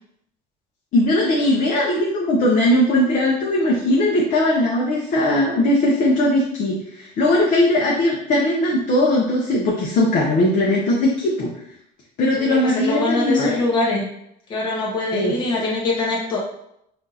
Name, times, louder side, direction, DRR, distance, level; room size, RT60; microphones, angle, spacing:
voice 1, 0.9-11.5 12.2-13.6 15.1-15.4, left 1 dB, 40° left, -3 dB, 0.7 m, -19 dB
voice 2, 12.3-14.0 14.5-16.4, left 2 dB, 25° left, -5 dB, 1.1 m, -23 dB
5.8 x 2.5 x 2.8 m, 0.76 s
cardioid pair, 165°, 19 cm